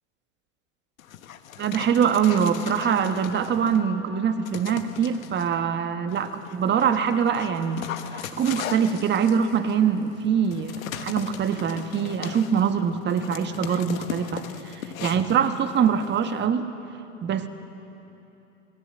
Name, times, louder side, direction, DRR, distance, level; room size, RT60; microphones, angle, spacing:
Dog, 1.0-3.9 4.4-5.5 6.1-16.5, left 9 dB, 80° left, 1.6 m, -39 dB
voice 1, 1.6-16.7 17.2-17.5, right 7 dB, 25° right, 8 dB, 1.5 m, -24 dB
27.0 x 18.0 x 8.0 m, 3.0 s
hypercardioid pair, 110°, 40 cm